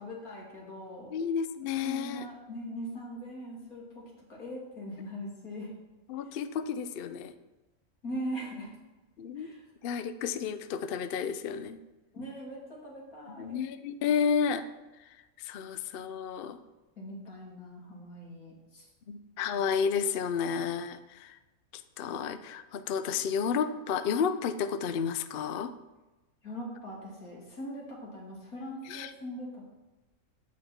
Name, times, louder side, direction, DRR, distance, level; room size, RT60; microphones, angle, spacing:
voice 1, 0.0-1.1 1.8-5.7 8.0-8.7 9.4-9.7 12.1-13.6 17.0-18.9 26.4-29.7, equal, 80° left, -3 dB, 3.0 m, -41 dB
voice 2, 1.1-2.3 6.1-7.3 9.2-9.5 9.8-11.8 13.3-14.7 15.4-16.6 19.1-21.4 22.0-25.7 28.9-29.1, left 7 dB, 65° left, 11 dB, 0.6 m, -31 dB
14.5 x 5.3 x 4.3 m, 1.1 s
omnidirectional pair, 1.5 m